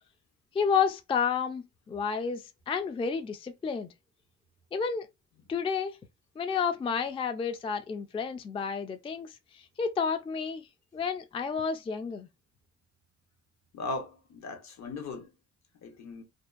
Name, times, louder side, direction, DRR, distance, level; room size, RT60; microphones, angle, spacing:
voice 1, 0.5-3.9 4.7-5.1 5.5-6.0 6.4-10.7 10.9-12.3, left 6 dB, 20° left, 0.3 m, -31 dB
voice 2, 13.7-15.3 15.8-16.2, left 3 dB, 60° left, 0.9 m, -38 dB
2.6 x 2.1 x 2.4 m
cardioid pair, 90°, 30 cm